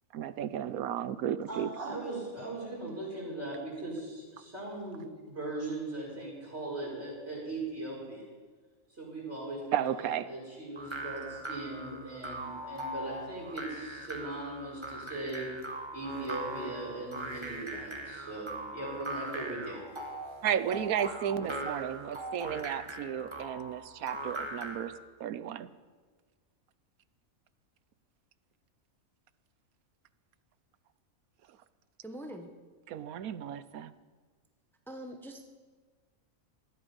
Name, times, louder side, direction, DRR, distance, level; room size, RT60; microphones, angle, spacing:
voice 1, 0.1-1.9 9.7-10.3 20.4-24.9 25.2-25.7 32.9-33.9, right 9 dB, 90° right, 15 dB, 1.2 m, -33 dB
voice 2, 1.5-8.2 8.9-15.5 15.9-19.8, right 2 dB, 50° right, -4 dB, 6.0 m, -39 dB
sound 1, 10.8-25.0, right 2 dB, 20° right, 1.5 m, -40 dB
voice 3, 32.0-32.5 34.9-35.5, right 1 dB, ahead, 4 dB, 1.2 m, -43 dB
19.5 x 13.5 x 5.4 m, 1.5 s
omnidirectional pair, 1.5 m